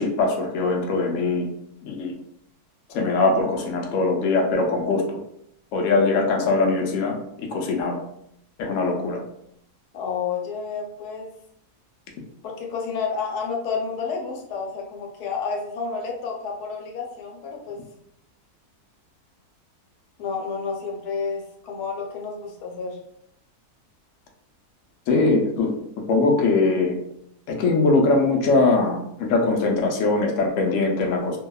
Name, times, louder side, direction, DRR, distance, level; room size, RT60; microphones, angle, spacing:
voice 1, 0.0-1.5 1.8-2.1 2.9-5.0 5.7-8.0 8.6-9.2 25.1-25.7 26.1-27.0 27.5-31.4, left 3 dB, 70° left, 1 dB, 0.8 m, -21 dB
voice 2, 9.9-11.3 12.4-17.8 20.2-23.0, left 5 dB, 85° left, 0 dB, 1.1 m, -30 dB
2.7 x 2.2 x 2.2 m, 0.74 s
omnidirectional pair, 1.6 m